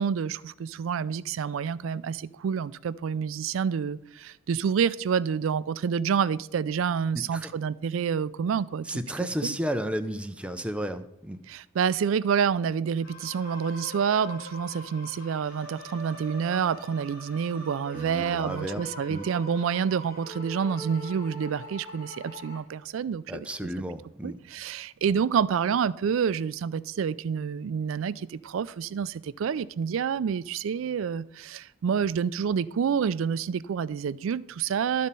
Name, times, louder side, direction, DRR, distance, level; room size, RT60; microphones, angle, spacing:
voice 1, 0.0-8.9 11.5-23.7 24.2-35.1, right 7 dB, 70° right, 0.3 m, -28 dB
voice 2, 7.1-7.5 8.9-11.4 17.9-18.8 19.1-19.3 23.3-24.4, right 1 dB, 5° right, 0.4 m, -33 dB
sound 1, 13.0-22.6, right 2 dB, 50° left, 1.8 m, -42 dB
12.5 x 4.2 x 5.3 m
head